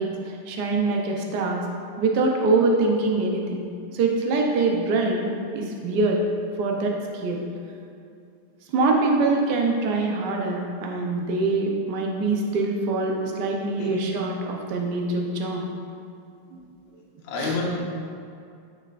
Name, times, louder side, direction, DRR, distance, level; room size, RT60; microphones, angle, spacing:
voice 1, 0.0-1.6 2.0-3.6 3.9-5.3 5.5-6.2 6.6-7.4 8.7-15.6 16.5-16.6 17.4-17.6, right 3 dB, 60° right, 0 dB, 1.2 m, -24 dB
voice 2, 13.8-14.2 17.2-17.7, left 3 dB, 65° left, -3 dB, 1.6 m, -29 dB
8.8 x 6.5 x 2.5 m, 2.5 s
omnidirectional pair, 2.3 m